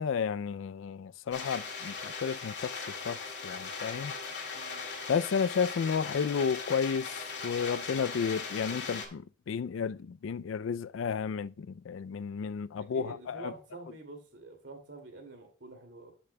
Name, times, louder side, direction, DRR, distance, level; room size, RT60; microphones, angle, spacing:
voice 1, 0.0-4.1 5.1-7.2 7.4-13.5, left 6 dB, 85° left, 0.4 m, -32 dB
sound 1, 1.3-9.1, left 4 dB, 60° left, 2.2 m, -39 dB
voice 2, 12.8-16.1, right 2 dB, 65° right, 2.4 m, -47 dB
13.5 x 6.1 x 2.2 m
head